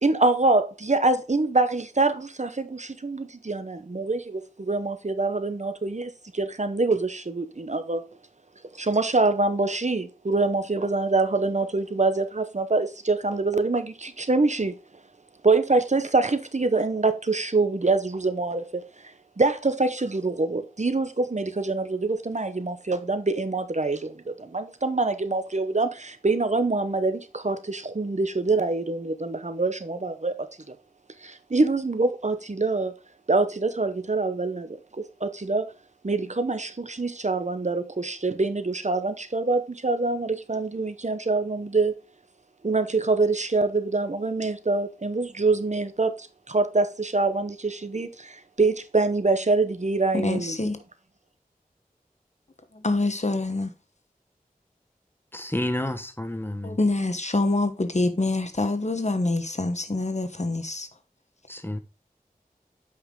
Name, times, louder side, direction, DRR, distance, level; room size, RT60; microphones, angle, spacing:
voice 1, 0.0-8.0 8.7-14.7 15.4-18.8 19.4-30.4 31.2-32.9 33.3-35.7 36.0-41.9 42.6-50.6, right 3 dB, 50° right, 0.9 m, -25 dB
voice 2, 50.1-50.8 52.7-53.7 56.6-60.9, left 2 dB, 50° left, 1.1 m, -26 dB
voice 3, 55.3-56.8 61.5-61.8, left 1 dB, 15° left, 1.1 m, -30 dB
8.2 x 5.5 x 3.8 m
wide cardioid pair, 50°, 15 cm